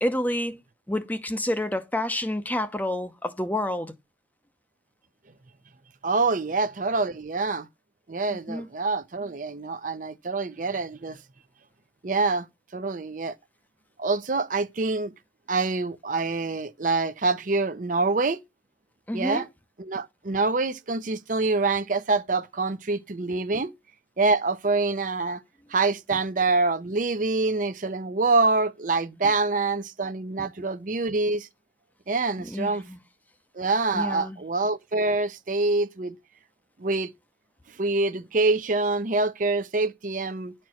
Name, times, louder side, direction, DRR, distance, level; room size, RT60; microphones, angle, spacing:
voice 1, 0.0-0.6 0.9-3.9 8.5-8.7 19.1-19.4 23.5-23.6 30.4-30.5 32.4-33.0 33.9-34.4, left 1 dB, 10° left, 0.7 m, -29 dB
voice 2, 6.0-7.7 8.1-11.2 12.0-12.5 12.7-13.4 14.0-15.1 15.5-18.4 19.1-19.5 19.8-23.7 24.2-25.4 25.7-31.5 32.1-32.8 33.5-36.1 36.8-37.1 37.8-40.5, right 3 dB, 45° right, 0.6 m, -25 dB
10.5 x 4.4 x 6.3 m
head